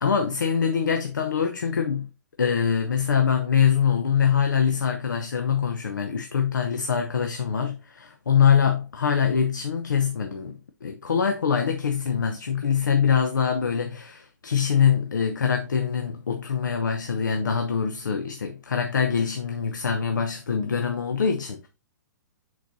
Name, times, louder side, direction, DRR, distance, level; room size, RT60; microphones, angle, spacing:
voice 1, 0.0-2.1 2.4-21.7, left 7 dB, 85° left, 0.8 m, -24 dB
10.0 x 4.5 x 2.7 m
hypercardioid pair, 130°, 10 cm